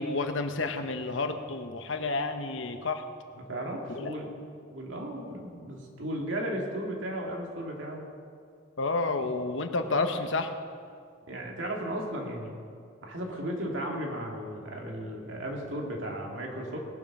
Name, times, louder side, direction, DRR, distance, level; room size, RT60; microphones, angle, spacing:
voice 1, 0.0-3.0 3.9-4.1 8.8-10.5, left 3 dB, 85° left, 7 dB, 1.0 m, -30 dB
voice 2, 3.3-4.3 4.7-8.0 11.3-12.5 13.0-16.8, right 1 dB, 85° right, 0 dB, 2.3 m, -35 dB
19.0 x 7.4 x 6.0 m, 2.2 s
head